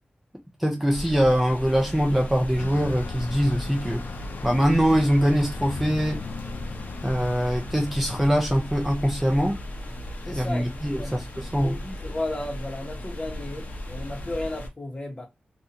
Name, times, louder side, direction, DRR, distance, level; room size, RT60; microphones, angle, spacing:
voice 1, 0.6-4.0 4.4-6.2 7.0-9.6 10.3-11.8, equal, 5° right, 0.5 m, -23 dB
sound 1, 0.9-14.7, left 1 dB, 50° left, 0.7 m, -36 dB
Bus, 2.6-8.5, left 4 dB, 90° left, 0.3 m, -38 dB
voice 2, 10.3-11.2 11.6-15.3, left 1 dB, 30° left, 1.0 m, -34 dB
2.6 x 2.4 x 2.8 m
wide cardioid pair, 105°, 3 cm